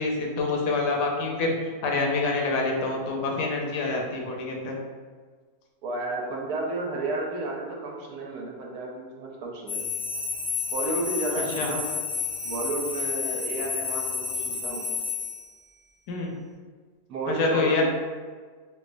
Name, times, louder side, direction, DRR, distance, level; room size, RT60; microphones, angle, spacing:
voice 1, 0.0-1.5 1.8-4.7 11.6-11.7 16.1-16.3 17.3-17.8, left 3 dB, 85° left, 0 dB, 1.2 m, -26 dB
voice 2, 5.8-9.9 10.7-12.0 12.4-14.9 17.1-17.8, right 3 dB, 75° right, -1 dB, 1.1 m, -32 dB
sound 1, 9.7-15.4, left 5 dB, 50° left, 0.8 m, -30 dB
4.3 x 2.3 x 2.5 m, 1.5 s
omnidirectional pair, 1.8 m